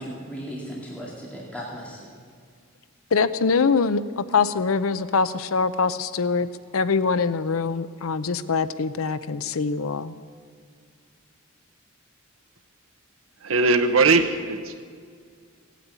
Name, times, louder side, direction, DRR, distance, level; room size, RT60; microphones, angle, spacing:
voice 1, 0.0-2.1, equal, 5° left, -4 dB, 2.2 m, -36 dB
voice 2, 3.1-10.1, left 5 dB, 85° left, 14 dB, 0.6 m, -24 dB
voice 3, 13.4-14.8, right 3 dB, 75° right, 9 dB, 0.9 m, -20 dB
17.5 x 9.2 x 8.3 m, 2.1 s
head